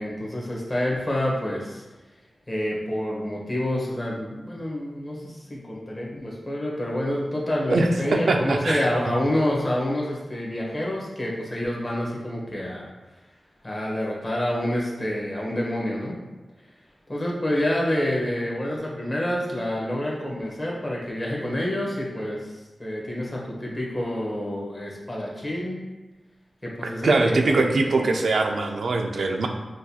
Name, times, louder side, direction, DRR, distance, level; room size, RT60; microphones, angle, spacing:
voice 1, 0.0-1.8 2.5-12.9 13.6-16.2 17.1-22.5 22.8-25.9 26.6-28.1, left 1 dB, 25° left, -3 dB, 1.0 m, -28 dB
voice 2, 7.7-8.9 26.8-29.5, right 3 dB, 85° right, 4 dB, 0.4 m, -22 dB
6.2 x 2.3 x 2.8 m, 1.1 s
wide cardioid pair, 95°, 0 cm